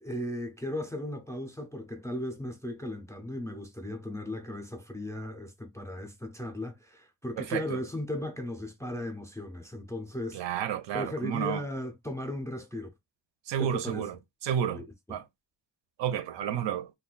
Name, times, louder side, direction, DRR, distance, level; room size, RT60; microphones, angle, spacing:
voice 1, 0.0-10.4 10.9-12.9 13.6-14.1 14.7-14.8, left 1 dB, 10° left, 0.3 m, -36 dB
voice 2, 7.4-7.8 10.3-11.6 13.5-14.2 14.4-14.8 15.1-15.2 16.0-16.9, right 9 dB, 80° right, 0.6 m, -31 dB
2.4 x 2.2 x 3.8 m
wide cardioid pair, 170°, 43 cm